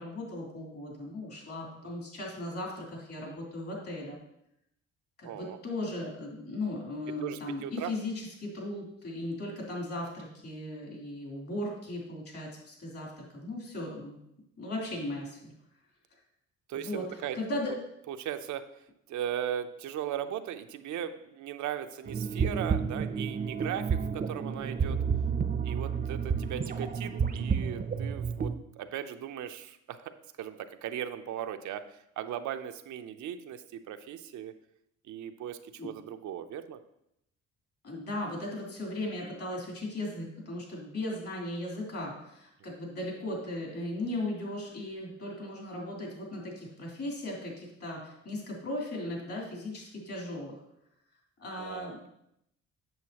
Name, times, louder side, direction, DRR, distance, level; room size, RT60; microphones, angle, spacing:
voice 1, 0.0-4.2 5.2-14.2 14.6-15.5 16.8-17.8 35.8-35.9 37.8-50.6 51.4-52.0, left 1 dB, 50° left, -2 dB, 3.2 m, -37 dB
voice 2, 5.2-5.6 7.2-7.9 16.7-17.4 18.1-18.7 19.1-25.0 25.6-30.1 30.4-31.8 32.2-34.5 35.1-36.8 51.6-52.1, right 10 dB, 75° right, 8 dB, 0.6 m, -38 dB
sound 1, 22.1-28.5, right 6 dB, 30° right, 0.5 m, -30 dB
7.9 x 6.8 x 2.9 m, 0.78 s
cardioid pair, 90°, 30 cm